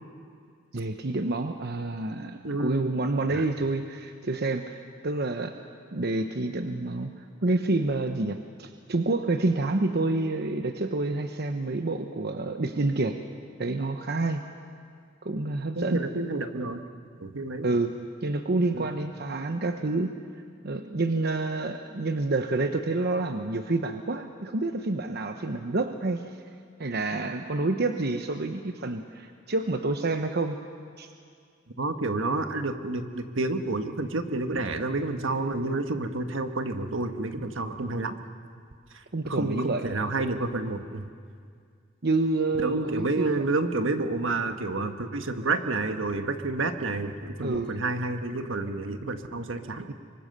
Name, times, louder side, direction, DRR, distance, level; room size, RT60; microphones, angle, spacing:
voice 1, 0.7-4.8 5.0-5.5 5.9-7.1 7.4-13.2 13.6-14.4 15.2-16.0 17.6-17.9 18.2-20.1 20.6-26.2 26.8-30.6 31.0-31.1 39.1-39.8 40.2-40.3 42.0-43.4 47.4-47.8 49.9-50.0, right 2 dB, 55° right, 7 dB, 0.9 m, -28 dB
voice 2, 2.4-2.8 3.3-3.5 15.7-16.8 17.2-17.7 18.7-18.9 31.8-38.2 39.2-41.1 42.6-49.8, right 2 dB, 75° right, 7 dB, 1.4 m, -29 dB
24.5 x 24.0 x 6.8 m, 2.2 s
head